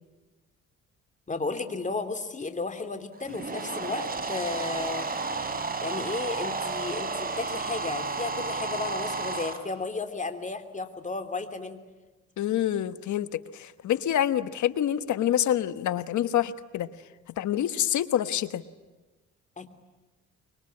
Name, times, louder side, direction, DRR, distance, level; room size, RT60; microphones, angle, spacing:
voice 1, 1.3-5.1 5.8-11.8 19.6-19.7, left 3 dB, 25° left, 8 dB, 3.1 m, -33 dB
sound 1, 3.1-9.6, right 3 dB, 30° right, 4.1 m, -32 dB
voice 2, 12.4-16.9 17.4-18.6, left 11 dB, 70° left, 13 dB, 1.3 m, -27 dB
25.5 x 23.5 x 9.7 m, 1.2 s
cardioid pair, 90°, 30 cm